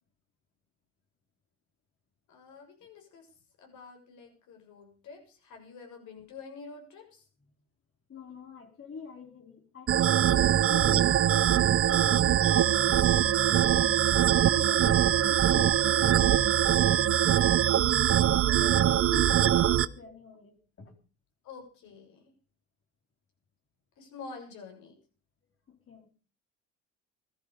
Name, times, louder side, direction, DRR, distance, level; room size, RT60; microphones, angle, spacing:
voice 1, 2.3-3.3 3.6-7.3 18.3-19.0 21.4-22.4 24.0-24.9, left 4 dB, 60° left, 3 dB, 7.1 m, -48 dB
voice 2, 8.1-11.6 11.9-12.9 14.3-16.4 18.3-20.9 25.7-26.1, left 5 dB, 40° left, 4 dB, 4.3 m, -44 dB
sound 1, 9.9-19.9, right 11 dB, 40° right, 0.8 m, -23 dB
17.5 x 13.5 x 5.1 m, 0.38 s
hypercardioid pair, 70°, 33 cm